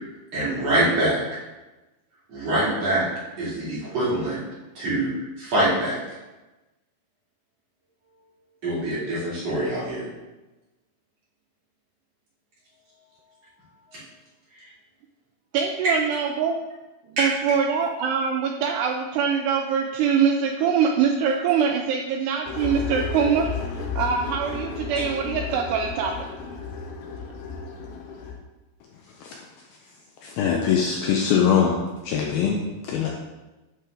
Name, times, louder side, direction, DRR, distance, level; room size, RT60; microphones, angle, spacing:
voice 1, 0.3-1.2 2.3-3.0 3.4-4.4 4.8-6.0 8.6-10.1 13.9-14.0 17.2-17.3, right 1 dB, 40° right, -10 dB, 3.7 m, -24 dB
voice 2, 15.5-16.6 17.2-23.5 23.7-26.3, right 6 dB, 85° right, 3 dB, 2.4 m, -23 dB
sound 1, 22.5-28.3, left 5 dB, 70° left, 2.7 m, -33 dB
voice 3, 30.2-31.8 32.0-33.1, left 7 dB, 90° left, -1 dB, 2.2 m, -22 dB
11.5 x 4.5 x 3.8 m, 1.1 s
omnidirectional pair, 5.1 m